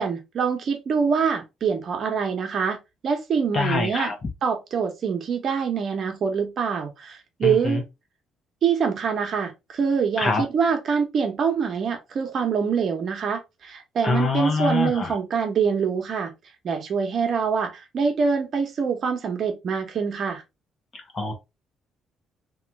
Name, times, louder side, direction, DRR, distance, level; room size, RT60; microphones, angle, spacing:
voice 1, 0.0-2.8 3.0-4.1 4.4-7.8 8.6-16.3 16.6-20.4, right 6 dB, 55° right, 1.2 m, -25 dB
voice 2, 3.5-4.1 7.4-7.8 10.2-10.4 14.0-15.1 21.1-21.3, left 3 dB, 40° left, 1.3 m, -24 dB
3.1 x 2.9 x 3.7 m
cardioid pair, 90°, 0 cm